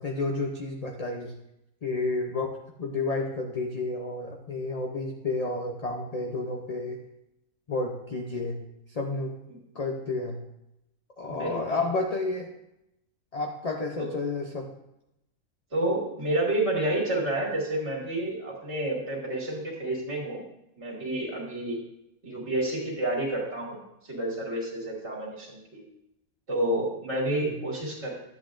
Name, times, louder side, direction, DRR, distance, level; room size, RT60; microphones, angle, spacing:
voice 1, 0.0-1.4 1.8-7.0 7.7-8.6 8.9-9.4 9.7-10.4 11.2-12.5 13.3-14.7 27.4-27.6, left 3 dB, 40° left, 1 dB, 0.5 m, -31 dB
voice 2, 11.2-11.8 14.0-14.1 15.7-20.4 20.8-21.8 22.2-23.8 24.0-25.8 26.5-28.2, right 1 dB, 45° right, -3 dB, 2.5 m, -29 dB
12.0 x 8.2 x 2.6 m, 0.86 s
omnidirectional pair, 1.6 m